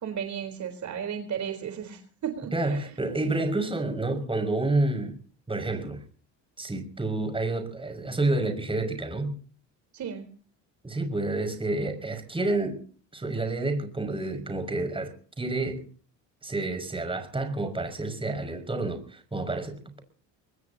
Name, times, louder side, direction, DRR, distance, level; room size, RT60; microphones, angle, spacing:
voice 1, 0.0-2.9 9.9-10.3, right 8 dB, 50° right, 4.1 m, -34 dB
voice 2, 2.5-5.2 5.5-6.0 6.6-9.4 10.8-12.8 13.1-15.8 16.4-20.0, right 2 dB, 15° right, 6.1 m, -29 dB
24.5 x 20.5 x 2.9 m
cardioid pair, 100°, 37 cm